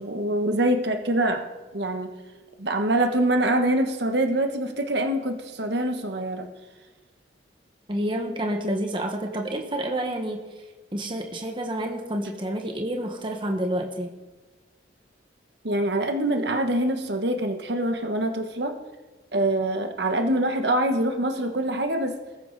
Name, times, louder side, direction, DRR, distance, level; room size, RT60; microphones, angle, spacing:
voice 1, 0.0-1.4 1.7-2.1 2.6-6.5 15.6-18.8 19.3-22.2, right 1 dB, 65° right, 5 dB, 1.3 m, -24 dB
voice 2, 7.9-10.5 10.9-14.1, right 1 dB, 25° right, 2 dB, 1.5 m, -29 dB
21.0 x 14.0 x 4.1 m, 1.2 s
head